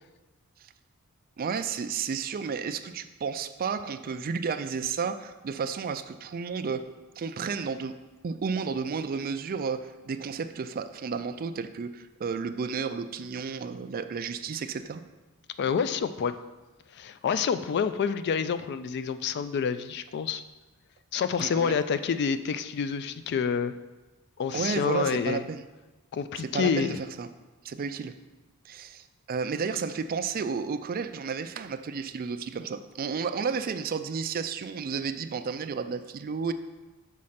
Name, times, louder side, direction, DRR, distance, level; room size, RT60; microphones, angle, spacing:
voice 1, 1.4-6.9 7.2-7.9 8.2-15.0 21.4-21.7 24.5-25.6 26.5-27.3 27.6-28.1 28.6-36.5, right 5 dB, 40° right, 10 dB, 0.4 m, -32 dB
voice 2, 15.6-16.3 16.9-20.4 21.1-23.7 24.4-25.4 26.1-27.0, left 6 dB, 50° left, 12 dB, 0.3 m, -28 dB
6.3 x 4.3 x 5.6 m, 1.1 s
head